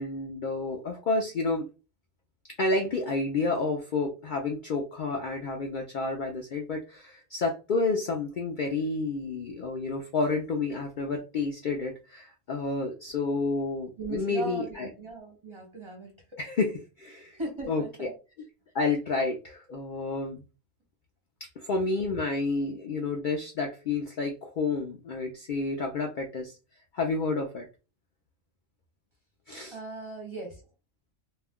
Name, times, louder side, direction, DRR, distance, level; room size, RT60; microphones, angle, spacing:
voice 1, 0.0-1.7 2.6-14.9 16.4-17.4 17.7-18.1 18.7-20.4 21.6-26.5 26.9-27.7 29.5-29.8, left 3 dB, 60° left, 2 dB, 0.5 m, -30 dB
voice 2, 14.0-16.1 17.4-18.1 29.7-30.6, right 2 dB, 30° right, -1 dB, 0.6 m, -38 dB
2.4 x 2.1 x 3.5 m, 0.32 s
omnidirectional pair, 1.3 m